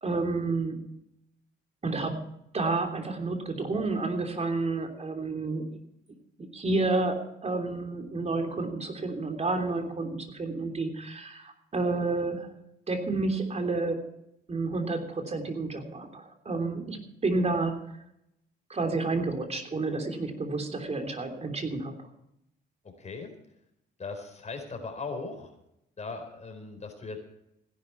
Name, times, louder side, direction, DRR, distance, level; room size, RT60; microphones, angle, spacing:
voice 1, 0.0-0.9 1.8-2.2 2.5-5.7 6.5-12.6 12.9-14.0 14.5-17.8 18.7-22.1, right 3 dB, 35° right, 4 dB, 3.3 m, -30 dB
voice 2, 23.0-23.3 24.0-25.5 26.0-27.2, left 4 dB, 35° left, 4 dB, 4.3 m, -38 dB
16.5 x 11.0 x 4.6 m, 0.80 s
cardioid pair, 90°, 20 cm